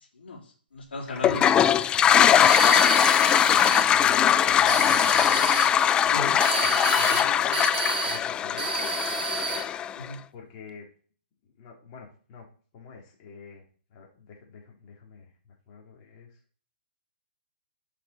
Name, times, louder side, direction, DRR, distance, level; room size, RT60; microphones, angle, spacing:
voice 1, 0.1-2.3 6.1-6.3 10.0-10.2, left 2 dB, 75° left, -7 dB, 4.3 m, -37 dB
Toilet flush, 1.2-10.1, left 9 dB, 15° left, 0.3 m, -21 dB
sound 1, 2.4-3.9 4.5-5.7 6.4-7.3 7.5-8.2 8.6-9.7, right 6 dB, 55° right, 1.4 m, -30 dB
voice 2, 3.1-5.8 6.0-6.3 6.6-8.9 10.3-10.9 11.4-12.5 12.7-13.6 13.9-16.4, left 5 dB, 35° left, -1 dB, 3.5 m, -46 dB
10.5 x 5.9 x 4.4 m, 0.44 s
figure-of-eight pair, 130°, 6 cm